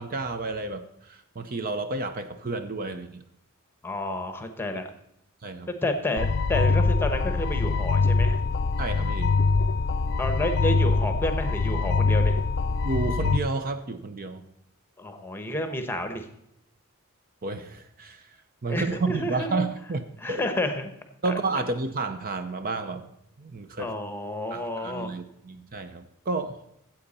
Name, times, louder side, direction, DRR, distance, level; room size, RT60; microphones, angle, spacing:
voice 1, 0.0-3.2 4.7-4.8 5.4-5.7 8.8-9.4 12.8-14.4 17.4-18.2 18.6-20.4 21.2-23.1 23.4-23.9 24.5-26.6, right 3 dB, 40° right, 9 dB, 0.7 m, -31 dB
voice 2, 3.8-4.9 5.8-8.4 10.2-12.4 15.0-16.3 18.7-19.6 20.2-20.9 21.3-21.6 23.8-25.1, left 1 dB, 10° left, 7 dB, 1.0 m, -30 dB
sound 1, 6.2-13.4, left 4 dB, 50° left, 0.4 m, -23 dB
14.0 x 8.0 x 4.2 m, 0.80 s
head